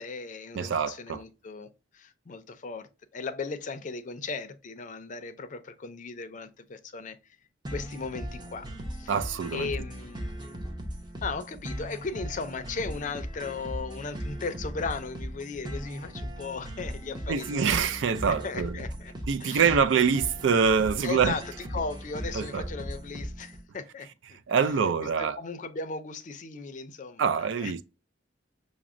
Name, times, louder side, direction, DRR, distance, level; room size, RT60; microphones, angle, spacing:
voice 1, 0.0-7.2 7.7-9.1 9.5-10.3 11.2-17.8 18.3-19.1 19.4-19.7 21.0-24.4 25.0-27.8, left 4 dB, 45° left, 0.4 m, -37 dB
voice 2, 0.5-1.2 9.1-9.7 17.3-18.8 19.3-21.4 22.3-22.7 24.5-25.4 27.2-27.8, right 6 dB, 75° right, 0.4 m, -25 dB
sound 1, 7.6-23.6, equal, 25° right, 0.7 m, -38 dB
5.8 x 2.0 x 2.5 m
head